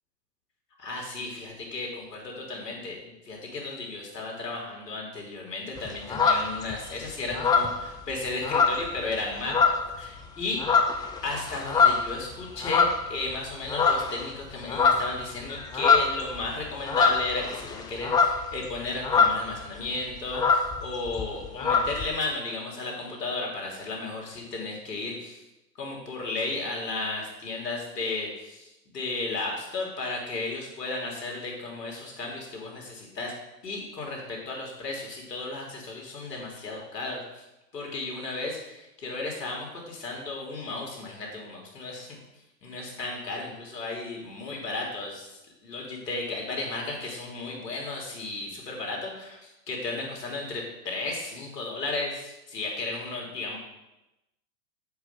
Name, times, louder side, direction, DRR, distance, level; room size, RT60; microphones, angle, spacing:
voice 1, 0.8-10.6 11.2-25.4 25.8-33.3 33.6-37.4 37.7-42.2 42.6-45.3 45.6-53.6, left 3 dB, 80° left, -1 dB, 3.3 m, -34 dB
sound 1, 5.8-6.9 7.3-9.2 9.4-10.0 10.4-13.3 13.7-14.3 14.5-19.6 19.9-20.0 20.2-22.1, left 5 dB, 10° left, 0.4 m, -24 dB
7.9 x 5.0 x 7.0 m, 0.96 s
hypercardioid pair, 110°, 48 cm